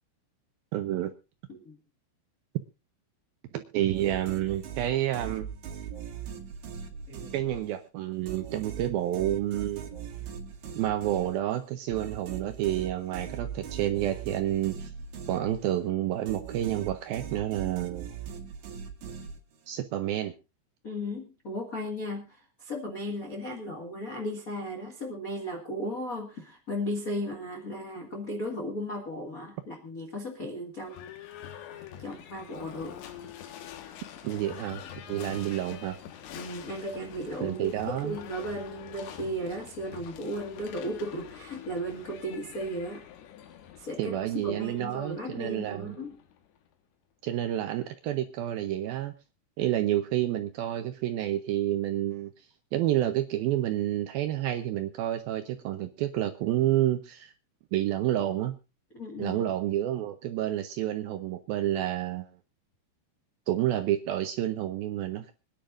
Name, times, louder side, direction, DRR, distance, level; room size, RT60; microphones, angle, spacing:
voice 1, 0.7-1.1 3.5-5.5 7.3-9.9 10.8-14.9 15.3-18.1 19.7-20.3 34.2-34.8 35.1-36.0 37.4-38.2 44.0-46.0 47.2-49.1 49.6-52.3 52.7-57.3 57.7-58.5 59.2-62.3 63.5-65.3, right 13 dB, 80° right, 8 dB, 2.2 m, -29 dB
sound 1, 3.9-7.9 8.3-15.9 16.3-19.7, right 7 dB, 50° right, 2.8 m, -40 dB
voice 2, 20.8-31.0 32.0-33.0 36.3-43.1 43.8-46.1 58.9-59.4, equal, 60° left, 1 dB, 0.8 m, -36 dB
Livestock farm animals working animals / Bell, 30.8-46.7, left 10 dB, 90° left, 3.8 m, -46 dB
25.0 x 10.5 x 2.5 m, 0.29 s
omnidirectional pair, 5.0 m